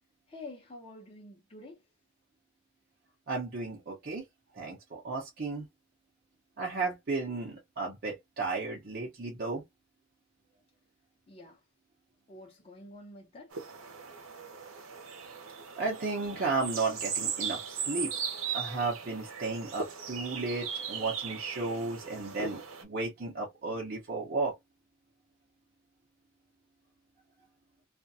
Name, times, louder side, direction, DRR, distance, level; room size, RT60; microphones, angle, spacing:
voice 1, 0.3-1.8 11.3-11.6 12.3-13.5 16.4-16.5, left 2 dB, 30° left, 0.8 m, -48 dB
voice 2, 3.3-4.2 4.6-5.7 6.6-9.6 15.8-18.1 18.5-24.5, right 3 dB, 50° right, 0.8 m, -34 dB
sound 1, 13.5-22.8, right 6 dB, 75° right, 0.8 m, -38 dB
2.5 x 2.2 x 2.6 m
head